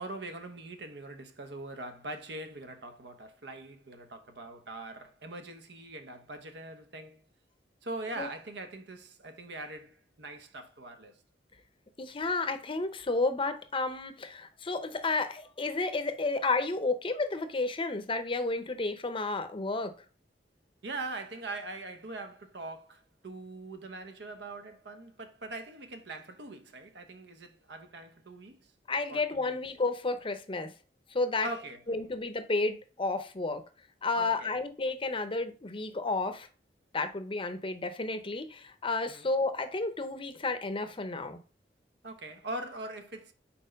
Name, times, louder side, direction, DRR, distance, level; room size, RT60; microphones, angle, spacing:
voice 1, 0.0-7.2 7.8-11.2 20.8-28.7 29.1-29.6 31.4-31.8 34.1-34.6 39.1-39.3 42.0-43.3, right 2 dB, 70° right, 0.9 m, -42 dB
voice 2, 12.0-20.0 28.9-30.7 31.1-31.5 31.9-33.6 34.0-36.5 36.9-41.4, left 3 dB, 30° left, 0.7 m, -31 dB
4.4 x 4.3 x 5.1 m
head